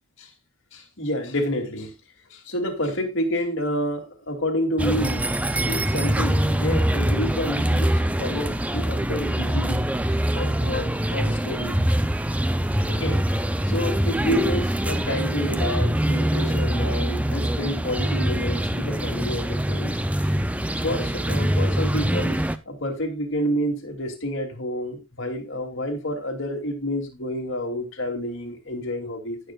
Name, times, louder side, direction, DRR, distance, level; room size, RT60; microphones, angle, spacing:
voice 1, 0.7-1.9 2.5-5.3 5.6-9.8 10.3-11.8 12.9-13.2 13.7-19.9 20.8-22.4 22.7-29.4, equal, 55° left, 2 dB, 2.9 m, -29 dB
sound 1, 4.8-22.6, right 1 dB, 5° right, 0.5 m, -24 dB
18.0 x 6.8 x 2.4 m, 0.23 s
head